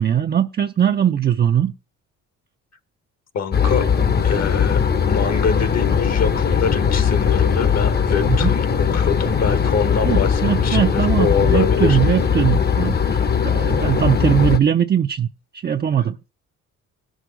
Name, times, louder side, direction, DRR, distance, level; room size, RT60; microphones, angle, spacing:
voice 1, 0.0-1.7 8.3-8.5 10.0-15.3 15.6-16.2, right 9 dB, 35° right, 0.5 m, -20 dB
voice 2, 3.3-3.9 4.2-12.0, left 6 dB, 60° left, 1.3 m, -25 dB
sound 1, 3.5-14.6, left 6 dB, 35° left, 0.8 m, -19 dB
18.0 x 6.3 x 3.8 m
cardioid pair, 90°, 30 cm